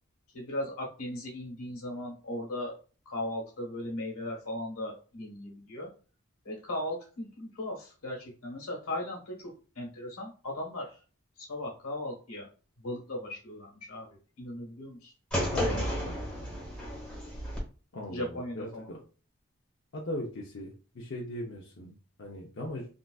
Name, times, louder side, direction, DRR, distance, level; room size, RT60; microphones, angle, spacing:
voice 1, 0.3-2.8 3.0-5.9 6.4-10.9 11.4-12.5 12.8-14.1 14.4-15.1 18.1-18.9, left 1 dB, 85° left, 0 dB, 1.3 m, -37 dB
sound 1, 15.3-17.6, equal, 5° left, 1.2 m, -32 dB
voice 2, 15.5-16.1 17.9-19.0 19.9-22.9, left 1 dB, 55° left, -2 dB, 0.6 m, -39 dB
3.7 x 2.4 x 2.3 m, 0.37 s
head